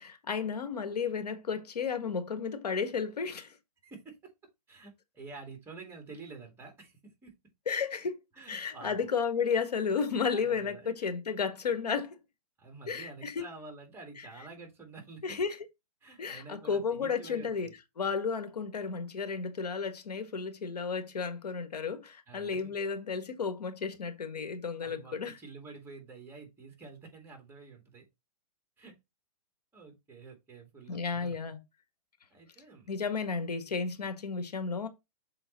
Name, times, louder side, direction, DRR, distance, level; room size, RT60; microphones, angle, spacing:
voice 1, 0.0-3.5 7.7-8.2 8.5-12.2 12.9-13.5 15.2-15.6 16.2-17.7 18.0-25.3 30.9-31.6 32.9-34.9, left 5 dB, 90° left, 1.5 m, -33 dB
voice 2, 3.8-4.3 4.7-7.3 8.3-9.1 10.3-10.9 12.6-15.4 16.0-17.8 22.3-22.7 24.8-28.1 28.8-29.0 29.7-31.5 32.3-32.9, right 4 dB, 10° right, 2.4 m, -49 dB
6.9 x 3.9 x 4.1 m
hypercardioid pair, 140°, 20 cm